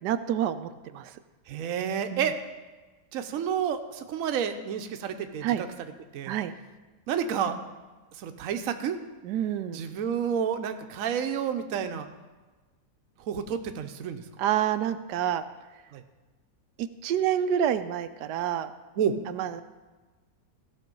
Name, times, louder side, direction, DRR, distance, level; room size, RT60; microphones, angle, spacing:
voice 1, 0.0-1.1 2.1-2.3 5.4-5.6 6.3-6.5 9.2-9.8 14.4-15.4 16.8-18.7 19.3-19.6, right 10 dB, 90° right, 10 dB, 1.2 m, -28 dB
voice 2, 1.5-2.4 3.1-5.7 6.1-6.3 7.1-7.6 8.2-9.0 9.7-12.1 13.2-14.2 15.9-16.0 19.0-19.2, right 8 dB, 60° right, 7 dB, 1.1 m, -30 dB
15.5 x 6.2 x 5.3 m, 1.2 s
omnidirectional pair, 1.7 m